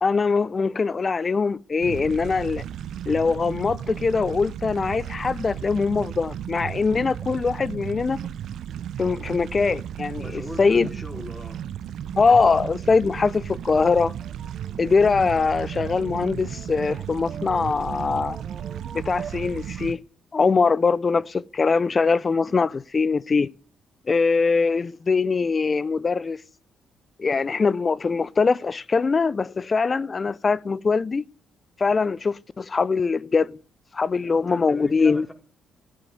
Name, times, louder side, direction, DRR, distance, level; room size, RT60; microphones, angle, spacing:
voice 1, 0.0-2.6 3.1-8.2 9.0-10.9 12.2-14.1 14.8-18.4 18.9-20.0 20.3-23.5 24.1-26.4 27.2-31.2 31.8-33.6 33.9-35.3, left 4 dB, 35° left, 0.7 m, -22 dB
sound 1, 1.8-19.9, right 10 dB, 70° right, 0.7 m, -34 dB
voice 2, 10.2-11.6 34.3-35.3, left 1 dB, 15° left, 4.9 m, -38 dB
sound 2, 12.8-20.0, right 5 dB, 40° right, 3.0 m, -45 dB
15.5 x 9.7 x 9.6 m
cardioid pair, 90°, 0 cm